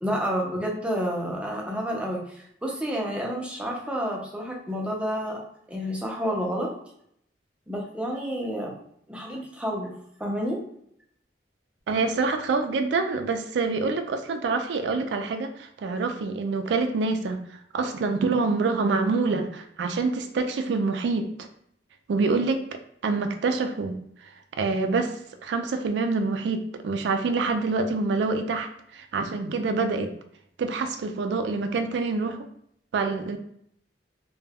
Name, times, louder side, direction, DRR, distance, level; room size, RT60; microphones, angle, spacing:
voice 1, 0.0-5.4 5.7-6.7 7.7-8.7 9.1-9.9 10.2-10.6, equal, 5° right, -2 dB, 0.5 m, -29 dB
voice 2, 11.9-17.4 17.7-21.5 22.1-22.7 23.0-24.3 24.6-25.1 25.4-30.1 30.6-32.4 32.9-33.4, right 4 dB, 80° right, 6 dB, 0.3 m, -26 dB
2.2 x 2.1 x 3.4 m, 0.70 s
head